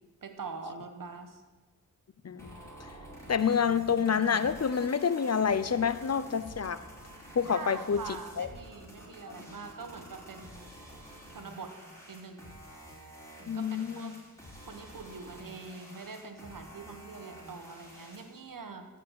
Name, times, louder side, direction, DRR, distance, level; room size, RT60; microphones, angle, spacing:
voice 1, 0.2-1.4 7.5-10.7 11.3-11.7 12.1-12.6 13.5-14.2 14.7-18.9, right 4 dB, 70° right, 6 dB, 1.5 m, -44 dB
sound 1, 2.4-18.4, equal, 10° left, 4.5 m, -49 dB
voice 2, 3.3-6.8 7.4-8.0 8.4-8.5 13.5-14.1, left 6 dB, 45° left, 14 dB, 0.7 m, -28 dB
14.0 x 5.5 x 8.3 m, 1.3 s
cardioid pair, 45°, 34 cm